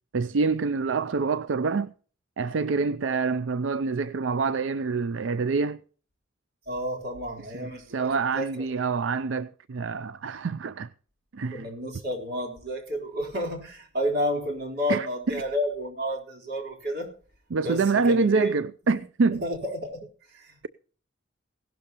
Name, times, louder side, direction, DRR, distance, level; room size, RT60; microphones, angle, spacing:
voice 1, 0.1-1.9 2.4-5.8 7.9-10.9 11.3-11.7 14.9-15.1 17.5-19.4, right 4 dB, 75° right, 0.4 m, -26 dB
voice 2, 6.7-8.7 11.5-17.1 17.6-18.6 18.9-19.0 19.3-20.7, equal, 55° right, 3.9 m, -31 dB
17.0 x 12.0 x 2.9 m
head